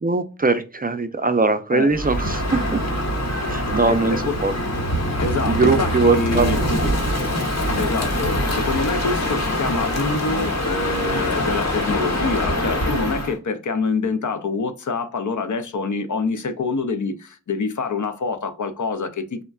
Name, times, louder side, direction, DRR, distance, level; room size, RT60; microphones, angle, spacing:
voice 1, 0.0-2.8 3.5-4.5 5.5-6.5 6.8-7.3, right 4 dB, 30° right, 0.4 m, -21 dB
Crow, 1.9-13.4, left 1 dB, 55° left, 1.0 m, -24 dB
voice 2, 3.9-4.4 5.2-6.6 7.7-19.4, left 4 dB, 70° left, 0.5 m, -26 dB
3.6 x 2.1 x 2.3 m
wide cardioid pair, 60°, 31 cm